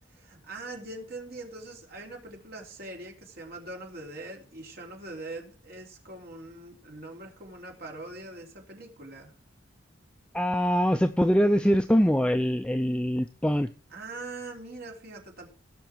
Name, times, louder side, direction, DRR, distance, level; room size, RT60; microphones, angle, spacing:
voice 1, 0.1-9.3 13.9-15.5, right 2 dB, 55° right, 0 dB, 3.9 m, -42 dB
voice 2, 10.3-13.7, equal, 5° left, 7 dB, 0.5 m, -23 dB
17.0 x 6.5 x 4.5 m, 0.37 s
head